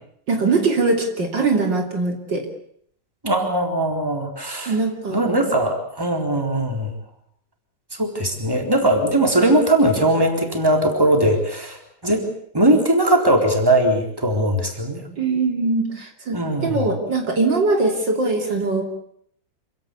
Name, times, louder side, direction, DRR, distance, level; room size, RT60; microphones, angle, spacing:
voice 1, 0.3-2.5 4.7-5.2 15.2-18.8, right 3 dB, 65° right, 4 dB, 3.5 m, -21 dB
voice 2, 3.2-4.7 5.1-6.9 7.9-12.3 12.5-15.1 16.3-16.9, right 1 dB, 10° right, 4 dB, 4.0 m, -20 dB
27.0 x 16.5 x 8.4 m, 0.65 s
omnidirectional pair, 2.1 m